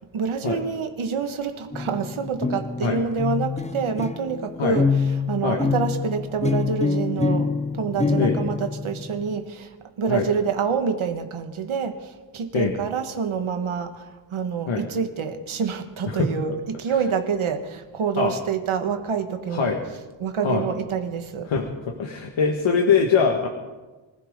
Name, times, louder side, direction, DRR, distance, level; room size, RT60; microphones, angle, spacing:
voice 1, 0.1-19.7 20.2-21.5, right 6 dB, 80° right, 1.6 m, -27 dB
sound 1, 1.7-9.4, left 4 dB, 15° left, 0.5 m, -26 dB
voice 2, 21.5-23.5, left 5 dB, 75° left, 1.6 m, -22 dB
24.5 x 15.5 x 3.8 m
wide cardioid pair, 120°, 48 cm